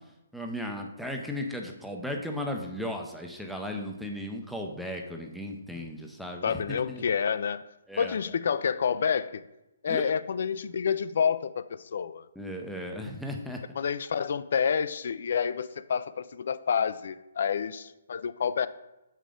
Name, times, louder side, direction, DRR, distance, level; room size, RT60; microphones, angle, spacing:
voice 1, 0.3-7.0 7.9-8.2 9.9-10.1 12.4-13.6, left 1 dB, ahead, 2 dB, 0.5 m, -36 dB
voice 2, 6.4-7.6 8.0-9.4 9.8-12.3 13.8-18.7, left 7 dB, 55° left, 15 dB, 0.3 m, -28 dB
6.5 x 5.1 x 3.7 m, 0.95 s
hypercardioid pair, 165°, 0 cm